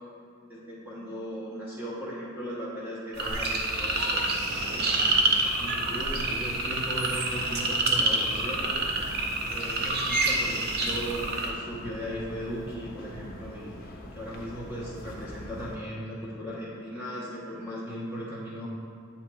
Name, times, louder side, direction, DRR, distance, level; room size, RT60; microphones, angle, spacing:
voice 1, 0.5-4.3 4.6-5.1 5.6-8.9 9.5-13.8 14.1-18.7, equal, 10° right, -7 dB, 0.8 m, -37 dB
sound 1, 3.2-11.5, right 2 dB, 50° right, 0.6 m, -27 dB
sound 2, 3.7-15.8, left 1 dB, 45° left, 0.7 m, -44 dB
7.6 x 2.9 x 4.5 m, 2.2 s
head